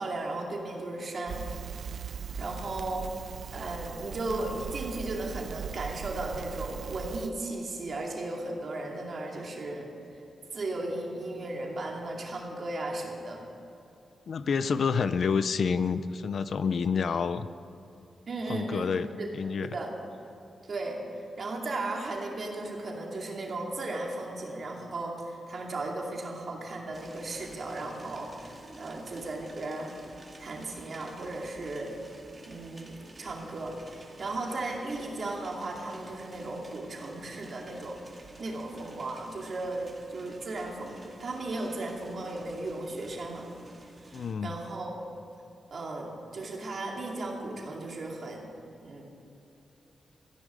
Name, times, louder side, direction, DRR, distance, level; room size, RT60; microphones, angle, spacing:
voice 1, 0.0-1.5 2.0-3.1 3.5-9.9 10.5-13.4 18.3-19.3 19.6-19.9 20.6-21.0 21.4-29.9 30.4-31.9 32.5-38.0 38.4-43.5 44.0-45.0 45.7-48.5 48.8-49.0, right 2 dB, 45° right, -1 dB, 2.5 m, -36 dB
Crackle, 1.3-7.3, right 7 dB, 70° right, 0.4 m, -39 dB
voice 2, 14.3-17.5 18.5-19.1 19.3-19.7 44.1-44.5, left 6 dB, 55° left, 13 dB, 0.5 m, -28 dB
sound 1, 26.9-44.3, right 2 dB, 30° right, 2.0 m, -51 dB
15.0 x 10.5 x 7.5 m, 2.7 s
wide cardioid pair, 170°, 0 cm